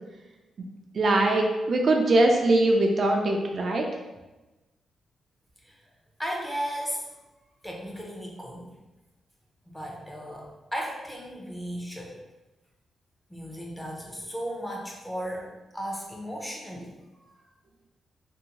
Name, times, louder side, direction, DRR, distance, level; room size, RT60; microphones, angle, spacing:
voice 1, 1.0-3.8, right 2 dB, 45° right, 1 dB, 0.3 m, -22 dB
voice 2, 6.2-7.0 7.6-8.7 9.7-12.2 13.3-16.9, equal, 5° left, -1 dB, 0.6 m, -35 dB
2.6 x 2.6 x 2.8 m, 1.1 s
cardioid pair, 115°, 0 cm